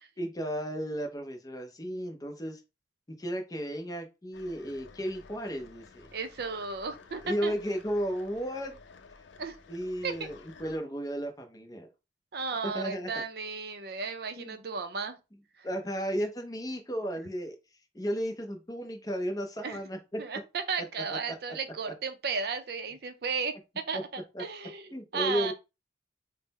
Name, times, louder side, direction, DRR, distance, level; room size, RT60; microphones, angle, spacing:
voice 1, 0.2-2.6 3.2-6.1 7.2-8.8 9.7-11.9 12.7-13.1 14.4-14.6 15.6-17.6 17.9-20.2 23.9-24.0 24.3-24.4 24.9-25.5, equal, 20° left, 0.6 m, -34 dB
sound 1, 4.3-10.8, left 4 dB, 75° left, 0.5 m, -53 dB
voice 2, 6.1-7.5 9.4-9.6 10.0-10.3 12.3-15.2 15.6-15.7 19.6-19.8 20.2-25.5, right 5 dB, 55° right, 0.4 m, -34 dB
3.7 x 2.0 x 4.0 m
head